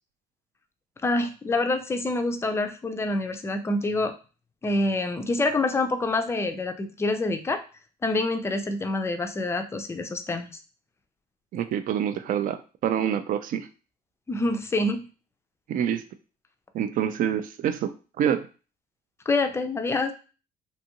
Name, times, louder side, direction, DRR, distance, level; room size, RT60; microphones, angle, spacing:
voice 1, 1.0-4.1 4.6-7.6 8.0-10.5 14.3-15.0 19.3-20.1, left 2 dB, 15° left, 7 dB, 0.4 m, -26 dB
voice 2, 11.5-13.7 15.7-16.0 16.7-18.5, right 9 dB, 55° right, 11 dB, 0.4 m, -27 dB
2.6 x 2.5 x 2.8 m, 0.34 s
cardioid pair, 110°, 17 cm